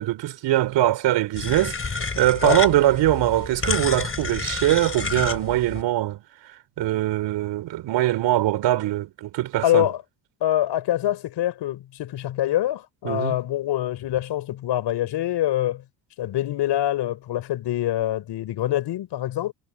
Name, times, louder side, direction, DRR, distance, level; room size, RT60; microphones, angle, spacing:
voice 1, 0.0-6.2 6.8-9.9 13.0-13.4, right 14 dB, 65° right, 4.1 m, -22 dB
sound 1, 1.4-5.8, left 4 dB, 30° left, 3.9 m, -29 dB
voice 2, 9.6-10.0 10.4-15.8 16.2-19.5, left 13 dB, 60° left, 4.3 m, -25 dB
supercardioid pair, 70°, 46 cm